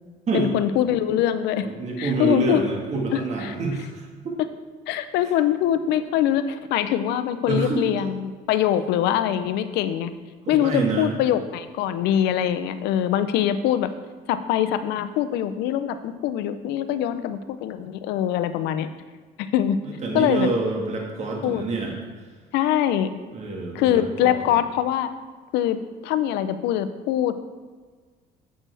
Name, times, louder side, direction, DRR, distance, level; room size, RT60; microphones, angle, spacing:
voice 1, 0.3-1.7 2.0-2.7 3.1-3.5 4.9-10.1 10.5-13.9 14.3-18.9 19.4-19.8 20.1-20.5 21.4-21.6 22.5-23.1 23.7-25.1 25.5-25.8 26.0-27.3, left 11 dB, 90° left, 12 dB, 0.6 m, -23 dB
voice 2, 1.6-4.4 7.5-7.8 10.5-11.1 19.8-21.9 23.3-24.5, right 3 dB, 45° right, 0 dB, 1.7 m, -27 dB
8.9 x 7.5 x 3.4 m, 1.5 s
cardioid pair, 110°, 17 cm